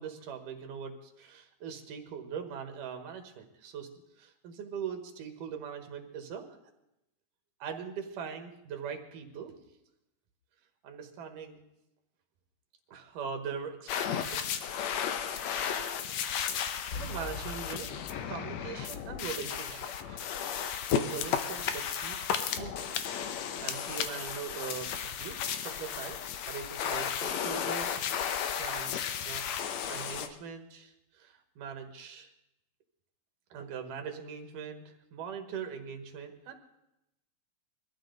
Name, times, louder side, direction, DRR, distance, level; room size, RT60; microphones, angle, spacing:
voice 1, 0.0-3.9 4.2-6.6 7.6-9.5 10.8-11.6 12.9-14.5 15.8-15.9 16.6-20.2 20.9-23.0 23.4-24.9 25.2-28.2 28.6-29.4 29.9-32.3 33.5-36.6, right 7 dB, 90° right, 5 dB, 3.1 m, -41 dB
sound 1, 13.9-30.3, left 8 dB, 70° left, 2.0 m, -34 dB
sound 2, 16.9-19.8, left 3 dB, 35° left, 2.9 m, -44 dB
22.5 x 13.5 x 4.0 m, 0.87 s
omnidirectional pair, 3.6 m